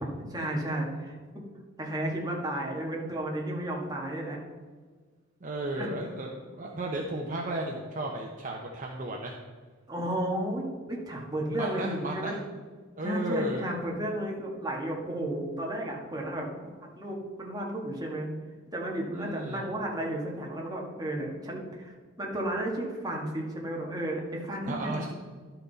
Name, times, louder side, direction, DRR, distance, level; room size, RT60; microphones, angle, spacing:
voice 1, 0.3-1.2 1.8-4.4 5.8-6.0 9.9-12.4 13.0-16.5 16.9-18.3 18.7-25.1, right 1 dB, 20° right, -2 dB, 1.6 m, -33 dB
voice 2, 5.4-9.3 11.5-12.4 13.0-13.6 19.1-19.6 24.7-25.1, right 1 dB, 40° right, 0 dB, 0.8 m, -34 dB
11.5 x 5.9 x 4.1 m, 1.5 s
head